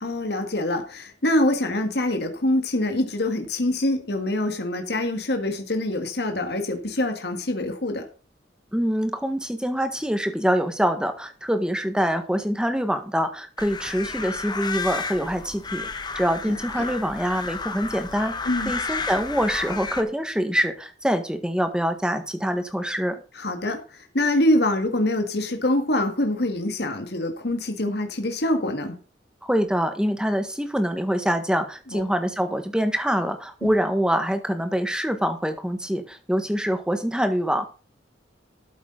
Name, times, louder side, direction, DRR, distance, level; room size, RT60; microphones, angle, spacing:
voice 1, 0.0-8.1 16.5-16.9 18.5-18.7 23.3-29.0 31.9-32.0 33.6-33.7, left 1 dB, 60° left, 5 dB, 1.9 m, -25 dB
voice 2, 8.7-23.2 29.4-37.7, equal, 5° right, 8 dB, 1.5 m, -25 dB
sound 1, 13.6-20.0, left 4 dB, 25° left, 1.1 m, -32 dB
13.0 x 8.3 x 4.0 m, 0.36 s
head